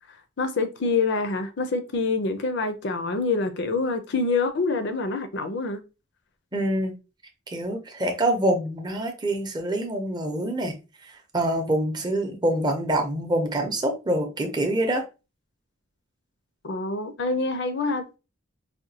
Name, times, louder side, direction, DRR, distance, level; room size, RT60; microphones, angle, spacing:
voice 1, 0.4-5.8 16.6-18.2, left 3 dB, 55° left, 0.5 m, -26 dB
voice 2, 6.5-6.9 7.5-10.8 11.3-15.0, right 1 dB, 20° right, 0.6 m, -25 dB
4.9 x 2.2 x 2.7 m
head